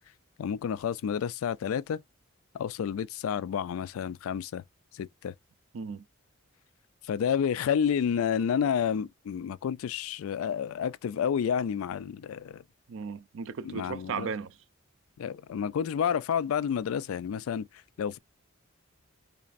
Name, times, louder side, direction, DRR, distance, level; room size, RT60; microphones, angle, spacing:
voice 1, 0.4-2.0 2.5-4.6 4.9-5.3 7.1-12.6 13.6-14.3 15.2-17.7 18.0-18.2, left 7 dB, 80° left, 0.3 m, -30 dB
voice 2, 5.7-6.0 12.9-14.6, right 6 dB, 65° right, 0.4 m, -36 dB
4.0 x 3.2 x 2.5 m
head